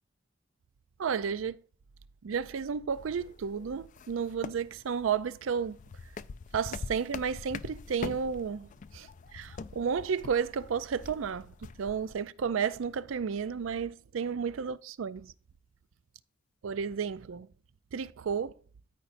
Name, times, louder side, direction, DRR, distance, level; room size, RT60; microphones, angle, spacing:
voice 1, 1.0-1.6 2.2-5.8 6.5-11.5 11.8-15.3 16.6-17.5 17.9-18.5, right 6 dB, 80° right, 0.4 m, -32 dB
sound 1, 2.9-12.1, left 5 dB, 40° left, 0.3 m, -44 dB
13.0 x 5.1 x 2.6 m
head